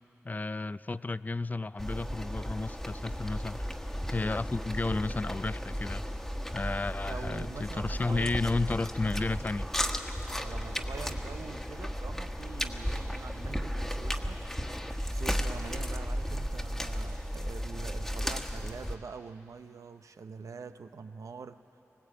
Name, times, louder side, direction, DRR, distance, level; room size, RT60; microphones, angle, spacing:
voice 1, 0.2-3.7 4.1-6.0 6.5-9.7, left 3 dB, 30° left, 16 dB, 0.4 m, -32 dB
sound 1, 1.8-19.0, equal, 5° left, 1.4 m, -35 dB
voice 2, 7.1-8.3 10.3-14.4 15.1-21.6, right 5 dB, 90° right, 9 dB, 0.7 m, -44 dB
20.5 x 18.5 x 8.6 m, 2.9 s
cardioid pair, 45°, 5 cm